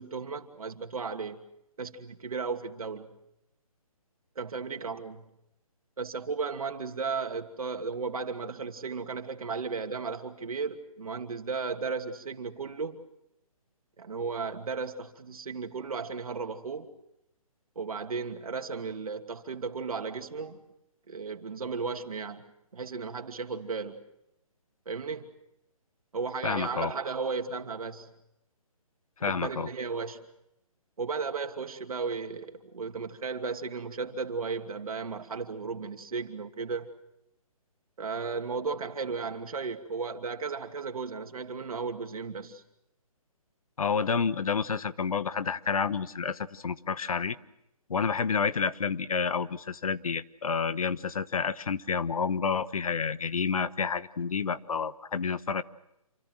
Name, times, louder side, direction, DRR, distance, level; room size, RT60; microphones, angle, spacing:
voice 1, 0.0-1.4 1.8-3.1 4.4-5.3 6.0-13.0 14.0-16.9 17.8-20.6 21.1-22.4 22.7-24.0 24.9-25.3 26.1-28.1 29.3-30.2 31.0-36.9 38.0-42.6, right 4 dB, 75° right, 2.7 m, -35 dB
voice 2, 26.4-26.9 29.2-29.7 43.8-47.4 47.9-55.6, left 5 dB, 70° left, 1.2 m, -29 dB
28.0 x 24.5 x 6.3 m
hypercardioid pair, 160°, 19 cm